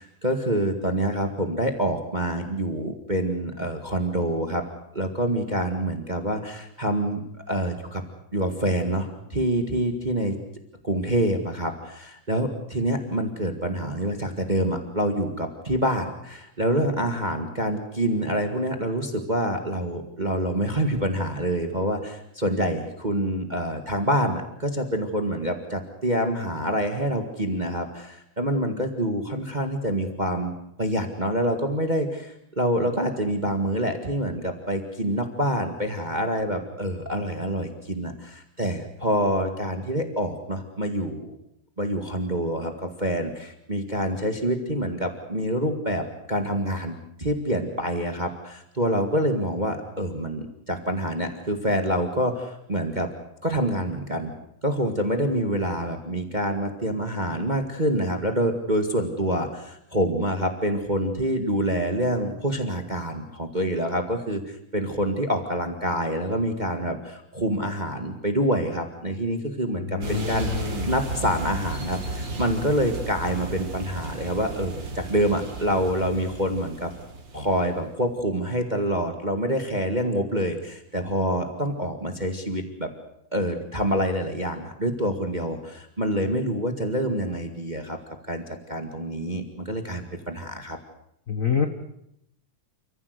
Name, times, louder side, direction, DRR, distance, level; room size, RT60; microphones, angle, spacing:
voice 1, 0.0-4.6 4.9-7.2 7.5-8.0 8.3-10.3 10.8-30.5 30.8-41.4 41.8-53.1 53.4-54.3 54.6-70.5 70.8-76.9 77.3-82.9 83.3-88.0 88.3-88.4 88.7-90.8, equal, 20° right, 6 dB, 1.4 m, -26 dB
voice 2, 69.8-70.9 91.3-91.7, left 7 dB, 45° left, 7 dB, 1.1 m, -26 dB
sound 1, 70.0-77.9, right 3 dB, 40° right, 3.2 m, -34 dB
29.5 x 15.0 x 8.1 m, 0.77 s
omnidirectional pair, 3.5 m